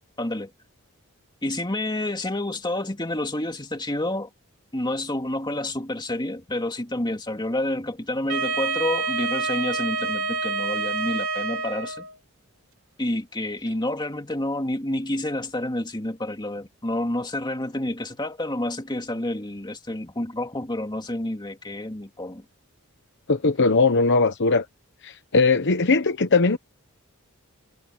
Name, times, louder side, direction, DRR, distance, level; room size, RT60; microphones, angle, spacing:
voice 1, 0.2-0.5 1.4-4.3 4.7-12.1 13.0-22.4, left 1 dB, 20° left, 2.6 m, -29 dB
Wind instrument woodwind instrument, 8.3-12.2, right 4 dB, 65° right, 3.5 m, -27 dB
voice 2, 23.3-24.6 25.0-26.6, left 3 dB, 55° left, 1.0 m, -20 dB
head